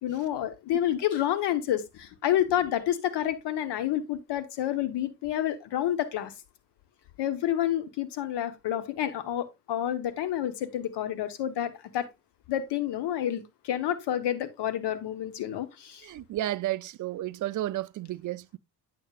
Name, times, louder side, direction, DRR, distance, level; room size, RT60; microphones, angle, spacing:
voice 1, 0.0-6.3 7.2-12.1 12.5-16.0, left 11 dB, 60° left, 1.3 m, -29 dB
voice 2, 16.0-18.6, right 14 dB, 45° right, 0.5 m, -32 dB
8.9 x 6.7 x 2.4 m
hypercardioid pair, 50°, 45 cm